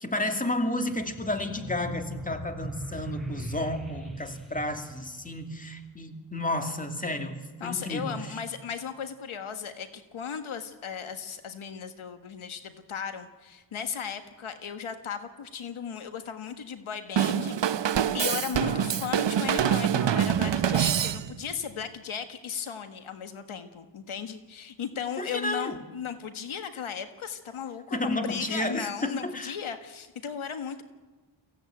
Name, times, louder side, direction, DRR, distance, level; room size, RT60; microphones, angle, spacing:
voice 1, 0.0-8.4 18.6-18.9 25.2-25.8 27.9-29.5, left 1 dB, 15° left, 5 dB, 2.4 m, -32 dB
sound 1, 0.8-5.8, equal, ahead, 4.5 m, -40 dB
voice 2, 7.6-17.6 17.8-30.8, left 7 dB, 85° left, 8 dB, 1.6 m, -36 dB
Drum kit / Drum, 17.2-21.5, right 9 dB, 60° right, 0.9 m, -25 dB
23.0 x 16.0 x 9.1 m, 1.2 s
wide cardioid pair, 100°, 48 cm